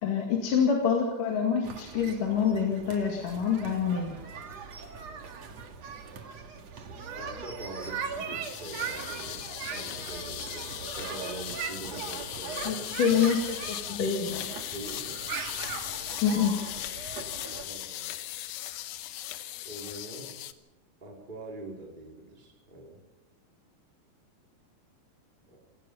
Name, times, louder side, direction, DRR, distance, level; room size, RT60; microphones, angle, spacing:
voice 1, 0.0-4.2 12.6-14.5 16.2-16.6, left 6 dB, 55° left, 0 dB, 3.5 m, -26 dB
sound 1, 1.6-17.6, right 6 dB, 50° right, 2.7 m, -40 dB
voice 2, 7.1-12.8 14.7-15.2 17.5-18.1 19.6-20.3 21.0-23.0 25.5-25.6, right 2 dB, 10° right, -2 dB, 4.5 m, -43 dB
sound 2, 8.4-20.5, left 13 dB, 80° left, 3.0 m, -38 dB
27.5 x 17.5 x 5.6 m, 1.0 s
omnidirectional pair, 4.7 m